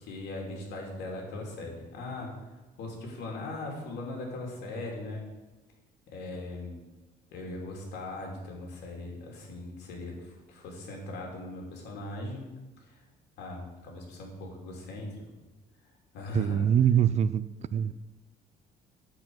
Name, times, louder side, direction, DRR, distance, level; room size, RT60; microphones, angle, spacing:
voice 1, 0.0-2.3 2.8-5.2 6.1-6.8 7.3-12.5 12.8-13.0 13.4-15.1 16.1-16.7 17.5-17.9, left 2 dB, 80° left, 2.9 m, -39 dB
voice 2, 16.3-17.9, right 9 dB, 40° right, 0.4 m, -24 dB
10.5 x 4.8 x 7.8 m
cardioid pair, 110°, 17 cm